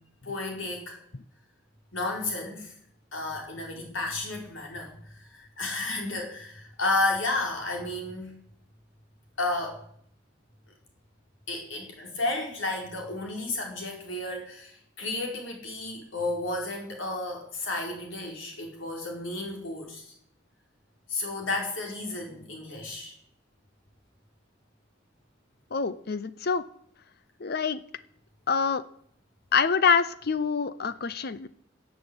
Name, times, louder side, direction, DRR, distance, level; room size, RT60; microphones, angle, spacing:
voice 1, 0.2-1.0 1.9-2.7 3.1-8.4 9.4-9.8 11.5-20.1 21.1-23.1, left 2 dB, 85° left, 1 dB, 4.8 m, -32 dB
voice 2, 25.7-26.7 27.4-27.8 28.5-28.8 29.5-31.5, left 5 dB, 55° left, 15 dB, 0.7 m, -26 dB
14.5 x 8.1 x 8.8 m, 0.65 s
head